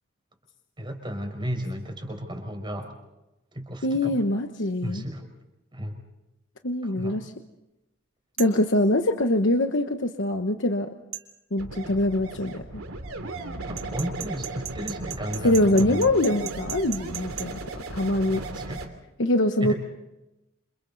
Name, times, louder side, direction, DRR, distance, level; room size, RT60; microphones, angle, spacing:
voice 1, 0.8-2.9 3.5-4.2 4.8-5.3 5.7-6.0 6.8-7.2 13.7-16.1 18.3-18.9 19.6-19.7, equal, 20° right, 4 dB, 4.9 m, -33 dB
voice 2, 3.8-5.0 6.6-7.3 8.4-10.9 11.5-12.8 15.4-17.6 17.9-18.4 19.2-19.7, left 1 dB, 60° left, 6 dB, 1.2 m, -23 dB
sound 1, 8.4-8.6 11.1-11.3 13.8-17.5, right 11 dB, 70° right, 2.4 m, -36 dB
sound 2, 11.6-18.9, right 2 dB, 85° right, 3.0 m, -36 dB
29.0 x 27.5 x 4.1 m, 0.95 s
head